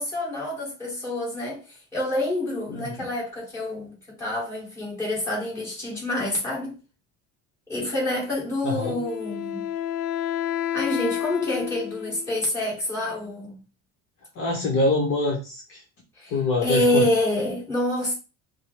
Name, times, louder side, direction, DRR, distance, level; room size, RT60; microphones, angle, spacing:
voice 1, 0.0-1.6 1.9-6.8 7.7-9.7 10.7-13.6 16.2-16.3 16.6-18.1, left 1 dB, 10° left, 1.6 m, -27 dB
voice 2, 2.7-3.1 8.6-9.0 14.3-15.8 16.3-17.1, left 2 dB, 40° left, 0.9 m, -25 dB
Wind instrument woodwind instrument, 8.8-12.4, left 10 dB, 65° left, 0.5 m, -30 dB
5.1 x 2.0 x 3.2 m
cardioid pair, 180°, 32 cm